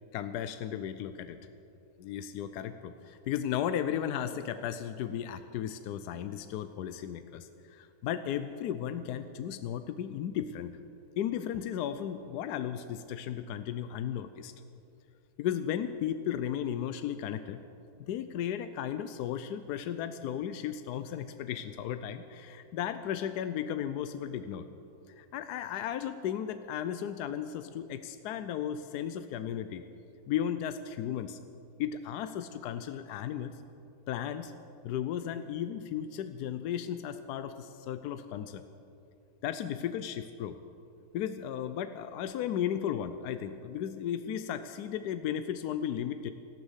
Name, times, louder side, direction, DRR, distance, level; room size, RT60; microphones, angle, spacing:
voice 1, 0.1-1.4 2.0-10.8 11.2-14.5 15.4-17.6 18.0-24.7 25.1-29.8 30.3-31.4 31.8-33.6 34.1-34.5 34.8-38.6 39.4-40.6 41.1-46.3, left 9 dB, 85° left, 10 dB, 1.2 m, -35 dB
13.5 x 12.0 x 8.0 m, 2.6 s
omnidirectional pair, 1.7 m